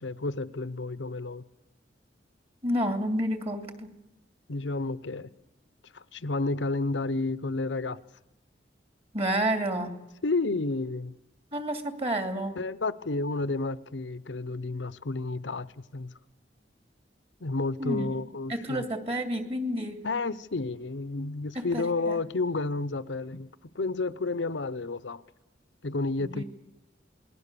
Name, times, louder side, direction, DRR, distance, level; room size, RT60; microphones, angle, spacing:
voice 1, 0.0-1.4 4.5-5.3 5.9-8.0 10.2-11.2 12.6-16.1 17.4-18.8 20.0-23.5 23.7-25.2 25.8-26.4, left 3 dB, 85° left, 0.8 m, -31 dB
voice 2, 2.6-3.9 9.1-10.0 11.5-12.6 17.8-18.0 18.5-20.0 21.5-22.2 26.2-26.4, equal, 35° right, 2.7 m, -30 dB
27.5 x 20.5 x 6.9 m
head